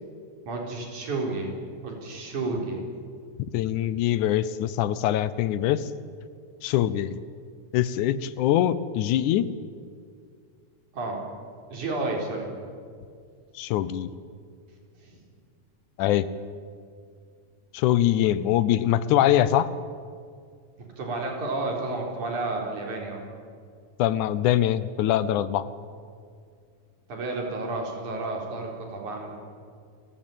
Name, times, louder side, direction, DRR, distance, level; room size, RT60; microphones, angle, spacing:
voice 1, 0.5-1.5 1.8-2.8 10.9-11.2 11.7-12.5 15.0-15.2 20.8-23.2 27.1-29.4, right 2 dB, 65° right, 0 dB, 5.2 m, -31 dB
voice 2, 3.5-5.9 6.6-7.2 7.7-9.5 13.6-14.1 16.0-16.3 17.7-19.7 24.0-25.7, left 12 dB, 75° left, 16 dB, 2.1 m, -23 dB
29.0 x 15.0 x 9.1 m, 2.2 s
omnidirectional pair, 3.8 m